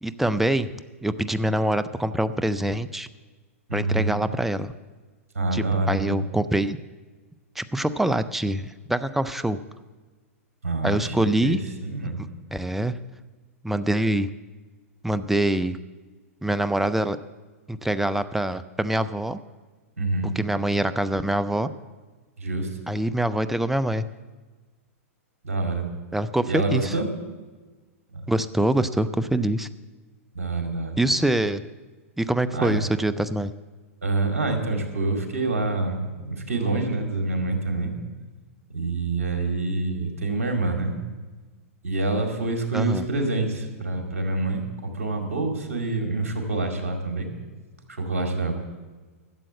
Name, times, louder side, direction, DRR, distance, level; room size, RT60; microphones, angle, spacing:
voice 1, 0.0-0.7 1.0-3.1 3.7-4.7 5.5-6.8 7.6-9.6 10.8-11.6 12.2-13.0 13.6-14.3 15.0-15.8 16.4-17.2 17.7-19.4 20.4-21.7 22.9-24.1 26.1-26.9 28.3-29.7 31.0-31.6 32.2-33.5 42.7-43.0, right 1 dB, 5° right, 13 dB, 0.4 m, -24 dB
voice 2, 3.7-4.2 5.3-6.2 10.6-12.2 20.0-20.3 22.4-22.7 25.4-25.9 26.5-27.1 28.1-28.2 30.3-31.0 32.5-32.8 34.0-37.9 38.7-41.0 41.8-47.3 47.9-48.6, right 2 dB, 75° right, 3 dB, 2.3 m, -26 dB
12.5 x 7.5 x 7.6 m, 1.3 s
hypercardioid pair, 110°, 8 cm